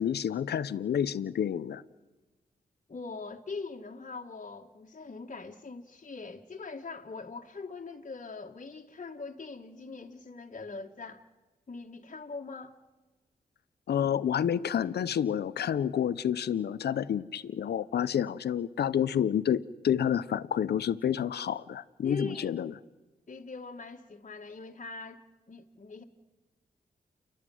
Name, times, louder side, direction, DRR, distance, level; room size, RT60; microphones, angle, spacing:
voice 1, 0.0-1.8 13.9-19.6 19.8-22.7, left 9 dB, 85° left, 0.7 m, -29 dB
voice 2, 2.9-11.2 11.7-12.8 22.0-22.6 23.3-25.2 25.5-26.0, left 4 dB, 50° left, 1.9 m, -42 dB
29.5 x 12.0 x 9.3 m
cardioid pair, 50°, 17 cm